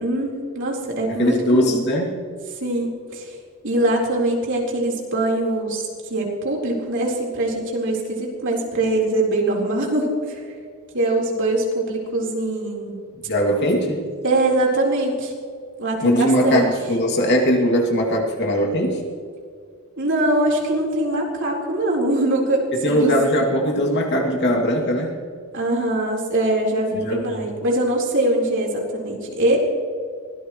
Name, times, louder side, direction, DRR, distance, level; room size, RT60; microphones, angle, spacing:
voice 1, 0.0-1.8 2.6-3.3 3.6-10.4 10.9-13.1 14.2-15.3 15.8-16.7 20.0-23.2 25.5-29.6, right 1 dB, 55° right, -2 dB, 4.1 m, -22 dB
voice 2, 1.1-2.2 13.3-14.1 16.0-19.0 22.7-25.2 26.9-27.5, equal, 50° left, 0 dB, 2.6 m, -20 dB
24.0 x 17.5 x 3.2 m, 2.3 s
head